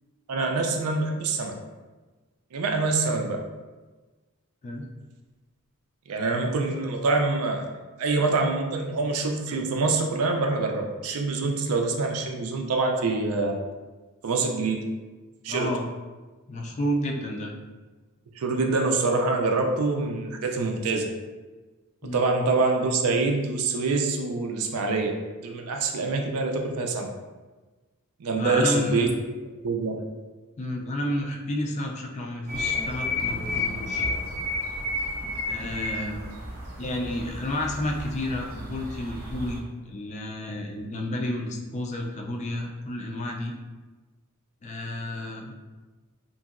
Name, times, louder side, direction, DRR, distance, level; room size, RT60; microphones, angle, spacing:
voice 1, 0.3-1.6 2.5-3.5 6.1-7.7 8.0-13.6 14.2-14.8 15.4-15.7 18.4-21.1 22.1-27.1 28.2-29.1 29.6-30.0, right 3 dB, 80° right, 3 dB, 0.4 m, -25 dB
voice 2, 15.5-15.8 16.5-17.5 22.0-22.2 28.4-29.2 30.6-34.1 35.4-36.3 36.8-43.5 44.6-45.5, left 1 dB, 30° left, 1 dB, 0.3 m, -31 dB
sound 1, 32.5-39.6, left 2 dB, 40° right, 0.6 m, -31 dB
2.9 x 2.6 x 2.4 m, 1.3 s
head